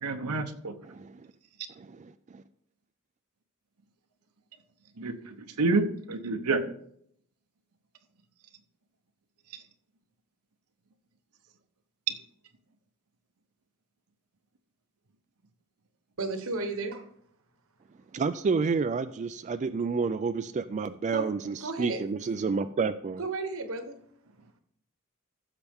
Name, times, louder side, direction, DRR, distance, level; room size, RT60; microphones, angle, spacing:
voice 1, 0.0-0.7 5.0-6.6 12.1-12.2, right 3 dB, 85° right, 0.9 m, -28 dB
voice 2, 0.8-1.3 1.8-2.4 18.1-23.2, right 4 dB, 35° right, 0.3 m, -30 dB
voice 3, 16.2-17.1 21.1-21.3 21.6-22.0 23.2-24.0, right 3 dB, 65° right, 1.1 m, -33 dB
15.0 x 6.7 x 3.6 m
head